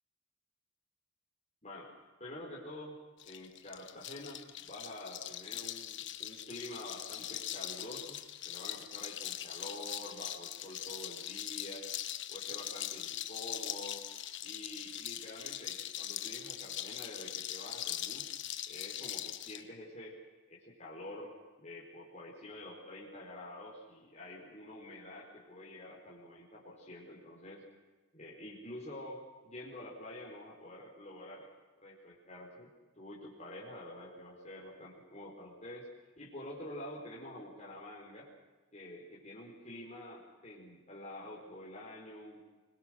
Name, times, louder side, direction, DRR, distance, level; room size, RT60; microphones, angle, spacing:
voice 1, 1.6-1.9 2.2-2.9 3.3-11.9 12.3-14.0 14.4-18.3 18.7-20.2 20.5-21.3 21.6-27.6 28.1-31.5 31.8-32.7 33.0-35.9 36.2-38.3 38.7-42.4, left 1 dB, 30° left, -5 dB, 4.7 m, -48 dB
sound 1, 3.2-19.6, left 12 dB, 55° left, 1.2 m, -41 dB
26.0 x 22.0 x 6.5 m, 1.2 s
head